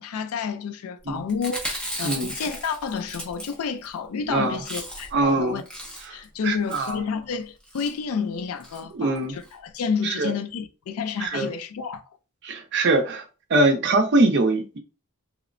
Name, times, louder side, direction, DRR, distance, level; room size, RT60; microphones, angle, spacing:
voice 1, 0.0-5.6 6.1-12.0, left 6 dB, 80° left, 0.4 m, -30 dB
Chewing mastication, 1.3-3.9 4.2-4.3 4.5-5.2 5.5-6.2 6.7-7.0 7.6-7.9 8.6-8.8 9.1-9.2 9.4-9.5, equal, 5° left, 0.5 m, -35 dB
voice 2, 2.0-2.3 4.3-4.6 5.1-5.6 6.1-6.2 6.4-7.0 8.9-9.4 10.0-10.3 11.2-11.5 12.4-13.2 13.5-14.8, right 2 dB, 50° right, 0.5 m, -22 dB
2.9 x 2.0 x 2.5 m
head